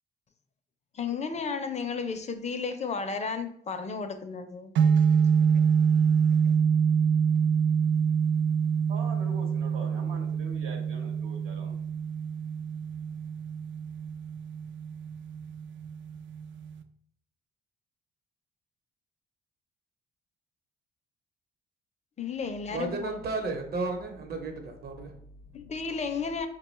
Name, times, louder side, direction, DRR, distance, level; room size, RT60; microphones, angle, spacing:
voice 1, 0.9-4.7 22.2-23.2 25.5-26.5, left 5 dB, 35° left, 0.4 m, -33 dB
sound 1, 4.8-16.8, right 7 dB, 70° right, 0.4 m, -26 dB
voice 2, 8.9-11.8, right 3 dB, 85° right, 1.0 m, -43 dB
voice 3, 22.7-25.7, right 3 dB, 50° right, 0.9 m, -34 dB
4.9 x 2.2 x 3.1 m
cardioid pair, 90°, 20 cm